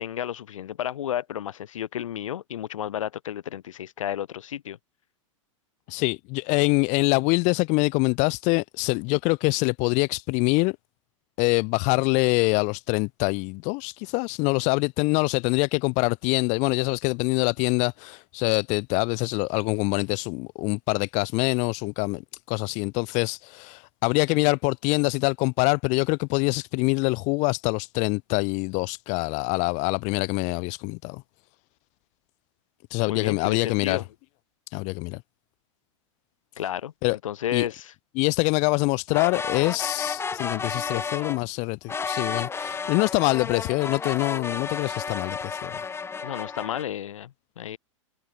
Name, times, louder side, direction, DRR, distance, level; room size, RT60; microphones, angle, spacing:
voice 1, 0.0-4.8 33.1-34.0 36.6-36.9 37.2-37.9 40.9-41.1 46.2-47.8, left 10 dB, 75° left, 3.2 m, -32 dB
voice 2, 5.9-10.8 11.4-31.2 32.9-34.0 34.7-35.2 37.0-37.2 37.5-37.7 38.2-45.8, left 29 dB, 45° left, 2.0 m, -25 dB
sound 1, 39.1-41.4 41.9-46.8, left 5 dB, 15° left, 2.0 m, -32 dB
hypercardioid pair, 115°, 17 cm